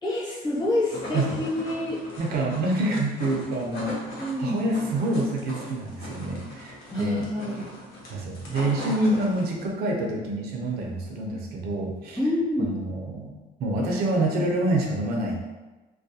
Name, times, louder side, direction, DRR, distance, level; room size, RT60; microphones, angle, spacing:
voice 1, 0.0-2.0 4.2-4.7 6.9-7.6 12.2-12.7, left 1 dB, 25° left, -7 dB, 1.1 m, -27 dB
sound 1, 0.6-9.7, left 1 dB, 65° left, 0.7 m, -39 dB
voice 2, 2.2-4.0 4.4-7.2 8.1-12.2 12.7-13.3 13.6-15.4, right 1 dB, 70° right, 0 dB, 0.5 m, -27 dB
2.3 x 2.1 x 2.7 m, 1.2 s
cardioid pair, 110°, 17 cm